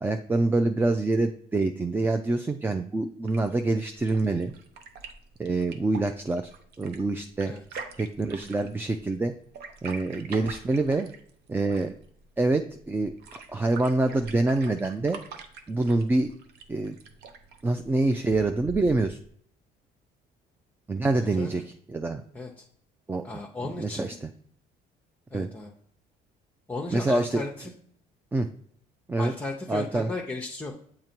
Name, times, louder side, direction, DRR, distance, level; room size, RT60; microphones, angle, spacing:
voice 1, 0.0-4.5 5.4-6.5 6.8-7.5 8.0-9.3 9.8-11.1 11.5-11.9 12.4-15.2 15.7-16.3 16.7-17.0 17.6-19.2 20.9-22.2 23.1-23.2 23.8-24.3 25.3-25.5 26.9-27.7 28.3-28.5 29.1-29.3 29.7-30.1, right 2 dB, 10° right, 6 dB, 0.3 m, -26 dB
sound 1, 3.2-19.3, right 4 dB, 75° right, 0.7 m, -45 dB
voice 2, 21.1-21.5 22.3-22.5 23.2-24.1 25.3-25.7 26.7-27.5 29.2-30.7, left 2 dB, 10° left, 0 dB, 0.7 m, -35 dB
7.4 x 2.8 x 4.4 m, 0.64 s
cardioid pair, 110°, 17 cm